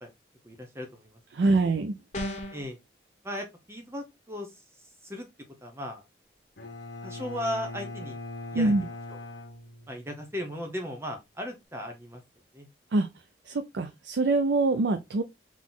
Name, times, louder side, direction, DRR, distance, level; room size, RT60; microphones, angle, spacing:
voice 1, 0.4-1.6 2.5-2.8 3.2-4.5 5.0-5.3 5.6-6.0 7.0-8.2 8.5-8.7 9.1-9.2 9.9-12.2 12.5-12.7, equal, 15° right, 0.8 m, -37 dB
voice 2, 1.3-2.0 8.5-8.9 12.9-13.1 13.5-15.2, right 3 dB, 85° right, 0.5 m, -24 dB
sound 1, 2.1-2.7, left 1 dB, 40° left, 1.1 m, -34 dB
Bowed string instrument, 6.6-10.4, left 2 dB, 90° left, 1.0 m, -41 dB
4.0 x 3.1 x 3.7 m
head